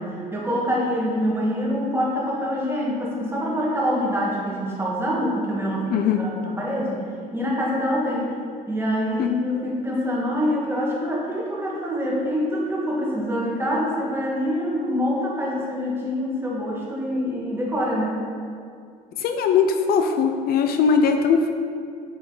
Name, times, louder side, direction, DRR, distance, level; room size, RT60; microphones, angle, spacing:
voice 1, 0.0-8.3 8.7-18.2, equal, 15° right, -4 dB, 1.6 m, -25 dB
voice 2, 5.9-6.2 9.2-9.3 19.2-21.5, left 6 dB, 65° left, 6 dB, 0.5 m, -20 dB
6.1 x 5.6 x 3.9 m, 2.3 s
cardioid pair, 110°, 17 cm